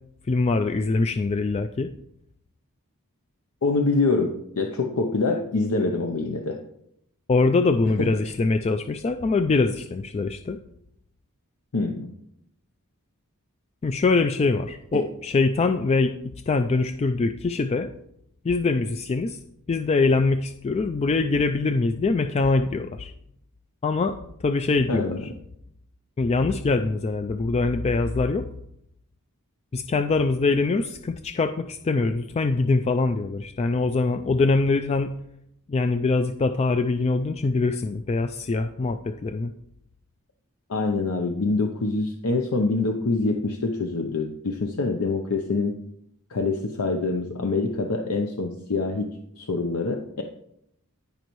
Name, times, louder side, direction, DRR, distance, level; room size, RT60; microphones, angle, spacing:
voice 1, 0.3-1.9 7.3-10.6 13.8-16.2 16.5-17.9 18.4-19.4 19.7-23.1 23.8-24.2 24.4-25.3 26.2-28.4 29.7-35.1 35.7-39.5, left 3 dB, 30° left, 8 dB, 0.3 m, -23 dB
voice 2, 3.6-6.6 8.0-8.1 11.7-12.1 14.9-15.0 24.9-25.2 40.7-45.7 46.3-49.1 49.4-50.2, left 3 dB, 75° left, 4 dB, 0.7 m, -25 dB
16.0 x 5.3 x 3.1 m, 0.76 s
head